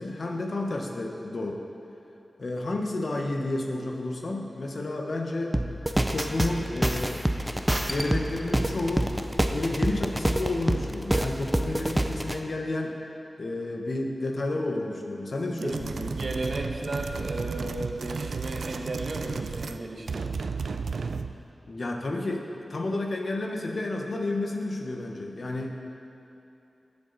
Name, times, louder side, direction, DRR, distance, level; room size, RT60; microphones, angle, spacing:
voice 1, 0.0-1.6 2.4-5.5 6.1-7.2 7.5-9.1 9.5-12.9 13.4-16.1 21.7-25.7, left 2 dB, 55° left, 1 dB, 1.2 m, -31 dB
sound 1, 5.5-12.4, right 1 dB, 10° right, 0.6 m, -27 dB
voice 2, 15.5-15.8 16.1-20.3, right 2 dB, 55° right, 1 dB, 1.3 m, -35 dB
sound 2, 15.6-19.8 20.1-21.4, right 4 dB, 90° right, 0.4 m, -33 dB
18.5 x 7.2 x 4.1 m, 3.0 s
wide cardioid pair, 105°, 0 cm